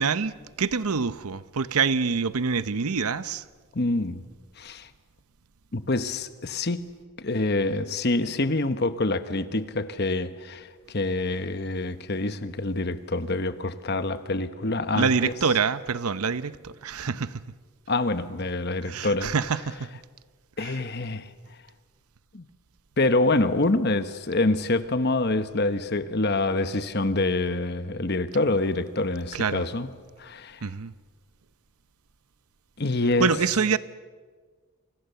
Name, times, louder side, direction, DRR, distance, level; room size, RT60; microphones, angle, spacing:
voice 1, 0.0-3.4 15.0-17.4 18.8-19.9 20.6-20.8 29.3-29.6 30.6-30.9 33.2-33.8, right 5 dB, 85° right, 0.7 m, -26 dB
voice 2, 3.7-4.3 4.6-4.9 5.7-6.9 7.2-15.3 17.9-19.3 20.6-21.3 22.3-22.5 23.0-29.9 30.2-30.7 32.8-33.3, left 2 dB, 50° left, 1.1 m, -26 dB
29.0 x 25.5 x 6.9 m
head